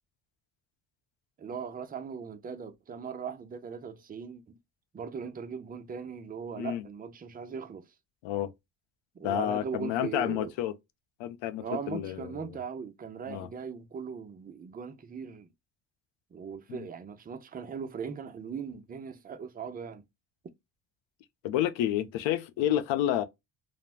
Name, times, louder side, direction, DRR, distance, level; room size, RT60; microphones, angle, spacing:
voice 1, 1.4-4.5 4.9-7.9 9.1-10.5 11.6-15.5 16.3-20.0, right 6 dB, 20° right, 0.4 m, -39 dB
voice 2, 9.2-10.7 11.2-12.6 13.3-13.5 16.7-16.9 21.4-23.2, left 12 dB, 80° left, 0.6 m, -30 dB
3.2 x 2.1 x 2.3 m
cardioid pair, 115°, 44 cm